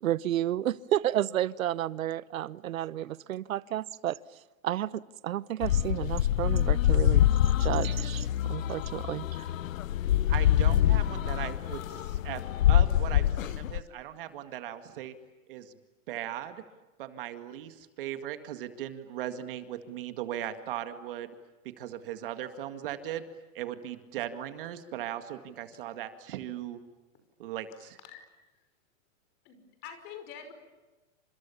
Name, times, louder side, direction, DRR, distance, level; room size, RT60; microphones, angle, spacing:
voice 1, 0.0-4.2 4.6-7.2 7.6-9.5, right 12 dB, 80° right, 19 dB, 1.0 m, -31 dB
sound 1, 5.6-13.8, left 11 dB, 80° left, 1.0 m, -25 dB
voice 2, 10.3-12.4 12.7-15.1 15.5-15.7 16.1-16.6 17.0-21.3 21.8-23.3 23.5-26.8 27.4-28.0, right 11 dB, 40° right, 9 dB, 2.0 m, -38 dB
voice 3, 27.7-28.2 28.5-28.6 29.4-30.5, left 8 dB, 25° left, 8 dB, 5.4 m, -47 dB
29.5 x 27.5 x 7.1 m, 1.2 s
supercardioid pair, 175°, 40 cm